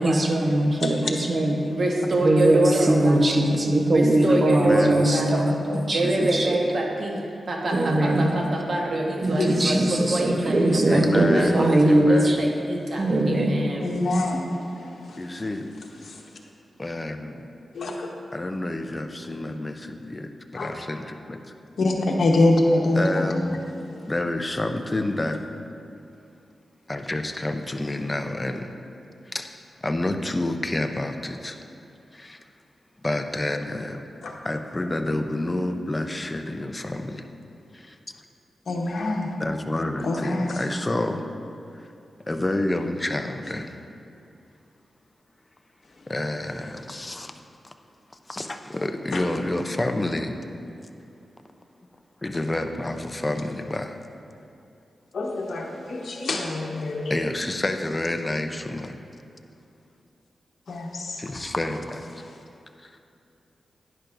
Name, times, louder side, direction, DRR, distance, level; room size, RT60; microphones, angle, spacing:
voice 1, 0.0-1.7 2.1-6.6 7.7-8.3 9.2-12.4 13.0-13.6, right 1 dB, 40° right, 2 dB, 1.1 m, -21 dB
voice 2, 1.7-3.2 3.9-5.3 5.9-7.2 7.5-9.8 10.1-11.0 11.3-13.9, right 1 dB, 65° right, -1 dB, 1.4 m, -25 dB
voice 3, 4.6-5.0 7.8-8.0 10.8-11.6 11.8-12.4 15.2-15.7 16.8-17.4 18.3-21.4 22.9-23.6 24.1-25.4 26.9-28.7 29.3-29.5 29.8-31.6 32.1-32.4 33.0-34.0 34.4-37.2 37.7-38.0 39.4-41.3 41.7-41.9 42.3-43.7 46.1-47.3 47.6-47.7 48.3-50.4 52.2-54.0 57.1-59.0 61.2-62.1 62.8-63.0, left 1 dB, 20° left, 6 dB, 0.6 m, -29 dB
voice 4, 13.8-15.2 16.0-16.2 17.7-18.1 20.5-20.7 21.8-23.5 34.2-34.3 38.7-39.3 40.0-40.6 49.1-49.2 55.1-57.2 60.7-61.2, left 2 dB, 75° left, 0 dB, 1.1 m, -25 dB
10.5 x 10.0 x 2.6 m, 2.6 s
cardioid pair, 80°, 0 cm